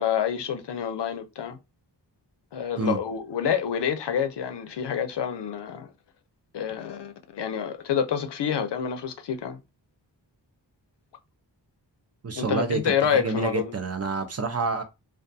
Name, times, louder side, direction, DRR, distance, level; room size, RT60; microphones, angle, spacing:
voice 1, 0.0-1.6 2.5-5.9 6.5-9.6 12.3-13.7, left 8 dB, 70° left, 0.5 m, -28 dB
voice 2, 12.2-14.8, right 4 dB, 35° right, 0.5 m, -28 dB
2.4 x 2.3 x 2.6 m
wide cardioid pair, 85°, 43 cm